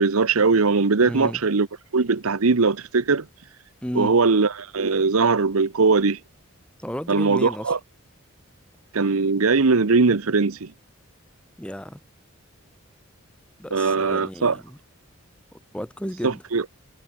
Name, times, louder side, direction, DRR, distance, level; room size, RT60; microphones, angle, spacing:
voice 1, 0.0-1.7 1.9-3.3 3.9-6.2 7.1-7.8 8.9-10.7 13.7-14.6 16.2-16.6, right 4 dB, 80° right, 0.9 m, -20 dB
voice 2, 1.0-1.4 3.8-4.2 6.8-7.7 11.6-12.0 13.6-14.8 15.5-16.4, equal, 5° left, 1.1 m, -33 dB
head